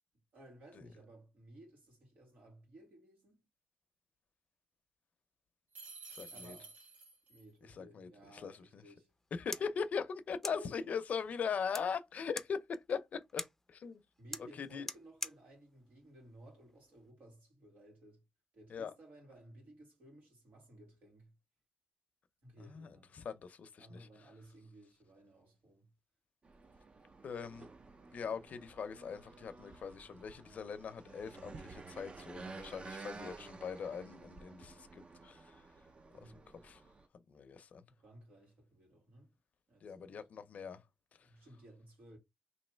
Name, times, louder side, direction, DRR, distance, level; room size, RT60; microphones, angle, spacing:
voice 1, 0.3-3.5 6.3-6.8 7.3-9.1 9.5-9.7 10.4-10.9 14.2-18.2 18.5-21.3 22.4-23.2 23.8-25.9 36.1-36.7 37.9-39.3 39.7-40.3 41.2-42.2, right 1 dB, 85° right, 2.1 m, -58 dB
sound 1, 5.7-7.4, right 4 dB, 70° right, 1.4 m, -51 dB
voice 2, 6.1-6.5 7.6-8.8 9.3-14.0 14.6-14.9 18.7-18.9 22.7-24.1 27.2-27.7 28.1-35.7 36.1-36.3 36.6-36.8 37.3-37.8 39.8-40.8 41.2-41.3, left 6 dB, 65° left, 0.6 m, -41 dB
sound 2, 9.1-17.1, left 1 dB, 10° left, 0.5 m, -49 dB
sound 3, 26.4-37.1, right 3 dB, 45° right, 0.6 m, -52 dB
3.1 x 2.8 x 4.4 m
cardioid pair, 90°, 3 cm